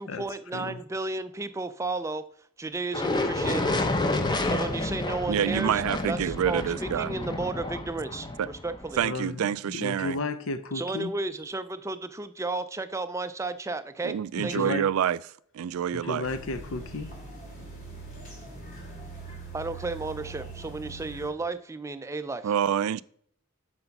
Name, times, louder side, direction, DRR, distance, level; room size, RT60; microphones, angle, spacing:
voice 1, 0.0-2.2 2.6-3.9 4.5-9.0 10.7-14.2 14.4-14.7 19.5-22.5, right 3 dB, 15° right, 0.4 m, -33 dB
sound 1, 2.9-9.1, left 2 dB, 20° left, 0.7 m, -30 dB
voice 2, 5.3-7.1 8.4-8.5 9.0-10.2 14.0-15.2 15.5-16.3 22.4-23.0, right 9 dB, 85° right, 0.3 m, -27 dB
voice 3, 9.0-11.1 14.4-14.9 15.9-17.1, left 3 dB, 70° left, 0.5 m, -33 dB
sound 2, 16.2-21.3, right 3 dB, 40° left, 3.1 m, -42 dB
7.9 x 4.4 x 5.8 m
head